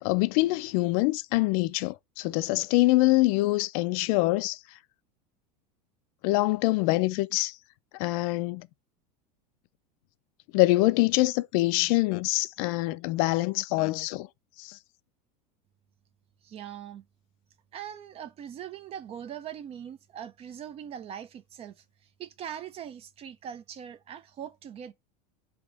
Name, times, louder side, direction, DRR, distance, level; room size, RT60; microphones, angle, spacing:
voice 1, 0.0-4.6 6.2-7.6 8.0-8.7 10.5-14.3 14.6-14.8, left 20 dB, 60° left, 0.4 m, -25 dB
voice 2, 16.4-17.0 17.7-21.8 22.2-24.9, right 9 dB, 30° right, 0.4 m, -41 dB
3.4 x 3.0 x 4.7 m
supercardioid pair, 135°, 21 cm